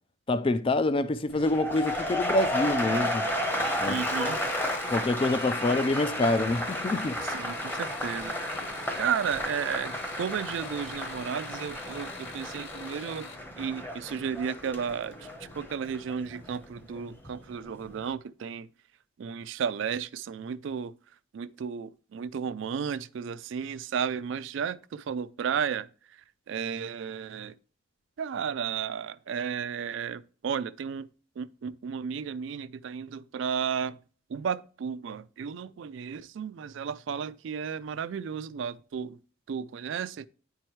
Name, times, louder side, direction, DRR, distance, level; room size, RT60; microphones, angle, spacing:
voice 1, 0.3-3.3 3.8-4.0 4.9-7.2, left 2 dB, 25° left, 0.3 m, -26 dB
sound 1, 1.3-17.4 17.7-18.1, left 1 dB, 10° left, 0.8 m, -33 dB
sound 2, 3.6-13.4 14.6-15.1 15.5-16.0 16.2-16.3, left 6 dB, 60° left, 0.8 m, -47 dB
voice 2, 3.9-4.4 7.2-8.4 8.7-13.3 13.6-18.7 19.2-20.9 21.3-27.6 28.2-31.1 31.4-34.0 34.3-39.2 39.5-40.3, right 7 dB, 60° right, 0.3 m, -33 dB
9.6 x 4.5 x 3.1 m
head